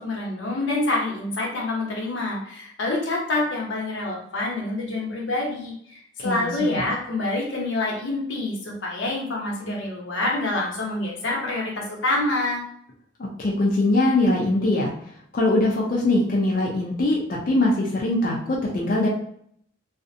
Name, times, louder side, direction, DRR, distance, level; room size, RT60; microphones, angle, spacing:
voice 1, 0.0-12.6, left 2 dB, 90° left, -2 dB, 0.8 m, -27 dB
voice 2, 6.2-6.8 13.4-14.9 15.3-19.1, left 2 dB, 45° left, -3 dB, 0.4 m, -22 dB
2.5 x 2.1 x 2.6 m, 0.66 s
head